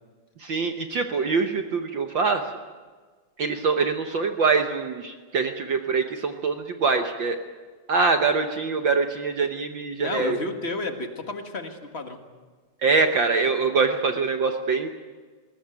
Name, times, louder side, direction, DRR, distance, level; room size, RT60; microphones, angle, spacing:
voice 1, 0.4-2.5 3.4-7.4 7.9-10.4 12.8-14.9, right 4 dB, 65° right, 6 dB, 1.2 m, -24 dB
voice 2, 10.0-12.2, left 2 dB, 35° left, 5 dB, 1.1 m, -31 dB
20.0 x 18.0 x 9.0 m, 1.4 s
omnidirectional pair, 3.5 m